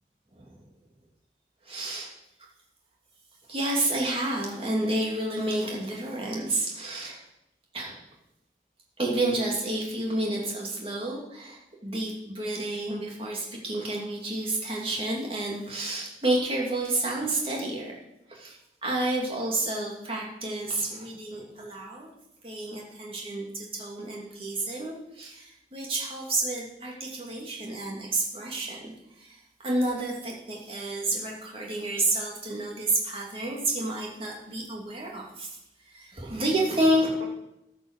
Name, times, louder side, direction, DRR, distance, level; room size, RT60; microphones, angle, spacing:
voice 1, 1.7-2.1 3.5-7.2 7.7-8.0 9.0-17.9 18.3-18.6 18.8-22.1 22.4-28.9 29.2-35.5 35.9-37.3, right 1 dB, 35° right, -3 dB, 2.8 m, -30 dB
14.0 x 6.1 x 6.7 m, 0.88 s
head